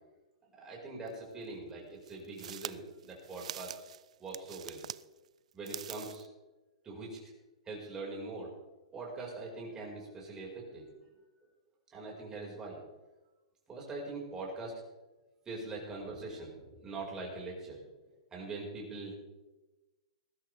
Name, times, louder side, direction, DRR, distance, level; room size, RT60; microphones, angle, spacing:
voice 1, 0.5-3.7 4.2-4.8 5.5-6.3 6.8-7.3 7.6-8.5 8.9-10.9 11.9-12.8 13.7-14.8 15.4-17.8 18.3-19.1, right 3 dB, 15° right, -3 dB, 5.1 m, -42 dB
sound 1, 1.1-1.2 2.0-5.0 5.5-6.3, right 10 dB, 70° right, 0.4 m, -44 dB
20.5 x 12.5 x 3.5 m, 1.1 s
hypercardioid pair, 140°, 4 cm